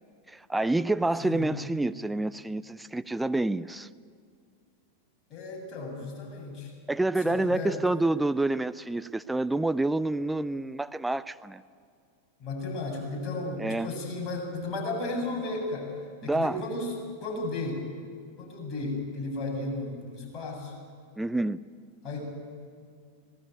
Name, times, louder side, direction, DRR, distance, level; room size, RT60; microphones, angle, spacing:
voice 1, 0.3-3.9 6.9-11.6 13.6-13.9 16.2-16.6 21.2-21.6, right 2 dB, 5° right, 14 dB, 0.5 m, -28 dB
voice 2, 1.2-1.5 5.3-6.7 7.2-7.8 12.4-15.9 16.2-16.9 17.2-17.8 18.4-20.7 22.0-22.2, left 2 dB, 30° left, 0 dB, 7.5 m, -34 dB
25.5 x 18.0 x 9.4 m, 2.2 s
figure-of-eight pair, 90°, 0 cm